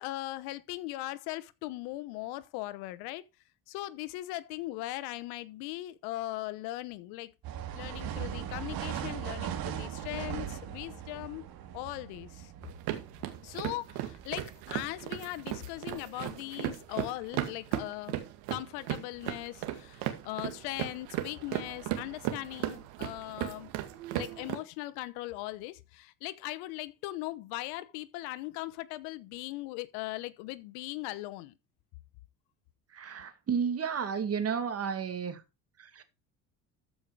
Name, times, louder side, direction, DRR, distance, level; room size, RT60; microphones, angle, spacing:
voice 1, 0.0-3.2 3.7-7.3 7.7-11.4 11.7-12.5 13.4-18.2 18.5-23.7 24.1-31.5, left 17 dB, 85° left, 1.0 m, -39 dB
sound 1, 7.4-15.4, right 10 dB, 65° right, 2.1 m, -40 dB
sound 2, 12.6-24.6, right 13 dB, 85° right, 2.1 m, -37 dB
voice 2, 32.9-35.4 35.8-36.0, right 6 dB, 40° right, 2.2 m, -32 dB
14.0 x 5.5 x 4.8 m
cardioid pair, 100°, 38 cm